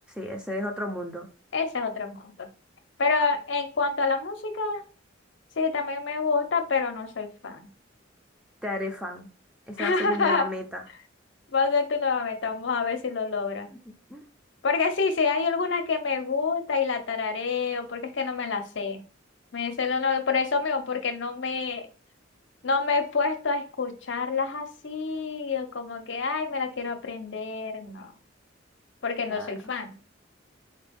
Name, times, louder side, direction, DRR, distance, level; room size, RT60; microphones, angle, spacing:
voice 1, 0.1-1.3 8.6-9.3 9.7-10.8 13.9-14.3 29.3-29.5, left 1 dB, 5° right, 2 dB, 0.5 m, -33 dB
voice 2, 1.5-2.5 3.0-4.8 5.6-7.7 9.8-10.4 11.5-13.7 14.6-19.0 19.5-21.9 22.6-28.1 29.0-30.0, left 4 dB, 65° left, 6 dB, 0.6 m, -27 dB
4.2 x 2.3 x 3.4 m, 0.38 s
head